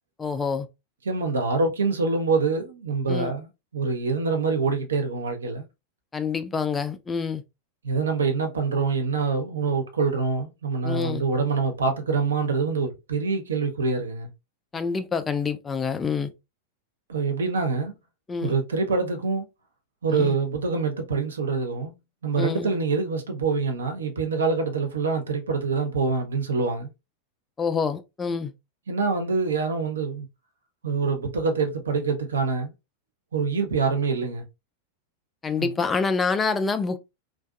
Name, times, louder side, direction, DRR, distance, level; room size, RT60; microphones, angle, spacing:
voice 1, 0.2-0.7 3.1-3.3 6.1-7.4 10.8-11.2 14.7-16.3 18.3-18.5 20.1-20.4 22.4-22.7 27.6-28.5 35.4-37.0, left 5 dB, 15° left, 0.3 m, -27 dB
voice 2, 1.1-3.5 3.7-5.6 7.8-14.3 17.1-17.9 18.4-19.4 20.0-21.9 22.2-26.9 28.9-30.3 30.8-32.7 33.3-34.4 35.6-35.7, right 4 dB, 70° right, 0.6 m, -25 dB
2.5 x 2.4 x 2.3 m
figure-of-eight pair, 90°, 0 cm